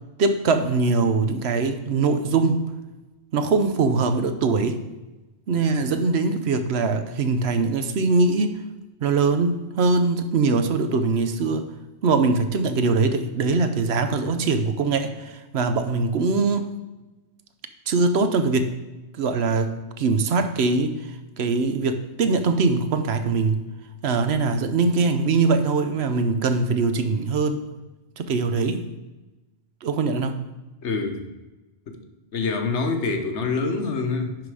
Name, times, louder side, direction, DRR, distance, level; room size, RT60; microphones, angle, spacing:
voice 1, 0.2-2.6 3.3-4.8 5.5-8.6 9.0-11.6 12.0-16.7 17.9-18.8 19.2-23.6 24.0-27.6 28.2-28.8 29.8-30.5, right 4 dB, 70° right, 9 dB, 0.9 m, -22 dB
voice 2, 30.8-31.2 31.9-32.0 32.3-34.4, left 4 dB, 90° left, 5 dB, 1.3 m, -25 dB
10.5 x 3.9 x 4.8 m, 1.1 s
omnidirectional pair, 1.2 m